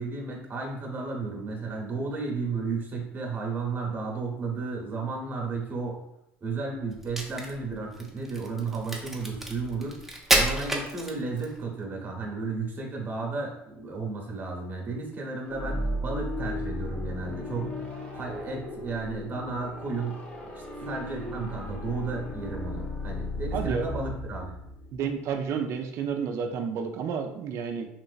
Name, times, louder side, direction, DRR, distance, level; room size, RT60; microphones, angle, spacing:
voice 1, 0.0-6.0 6.4-10.0 10.3-24.5, right 4 dB, 35° right, 0 dB, 1.0 m, -33 dB
Crack, 7.0-11.6, right 1 dB, 5° right, 0.7 m, -29 dB
sound 1, 15.5-25.2, left 1 dB, 25° left, 1.0 m, -35 dB
voice 2, 23.5-23.9 24.9-27.9, right 6 dB, 60° right, 4 dB, 0.4 m, -30 dB
3.1 x 2.9 x 2.4 m, 0.81 s
supercardioid pair, 85°, 6 cm